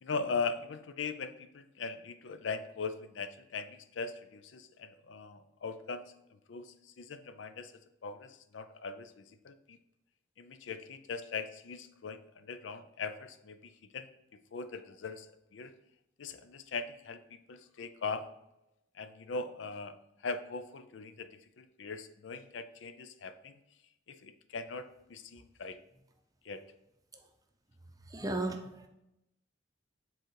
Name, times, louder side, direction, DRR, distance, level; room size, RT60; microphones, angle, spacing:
voice 1, 0.0-6.0 6.5-7.7 8.0-9.1 9.4-9.6 10.4-13.6 13.9-14.1 14.5-15.3 15.5-15.7 16.2-17.2 17.5-18.3 19.0-19.9 20.2-21.3 21.6-23.5 24.1-25.8 26.5-26.6, left 4 dB, 70° left, 11 dB, 0.5 m, -40 dB
voice 2, 28.1-28.9, right 2 dB, 20° right, 4 dB, 0.7 m, -35 dB
7.6 x 3.8 x 4.6 m, 0.86 s
head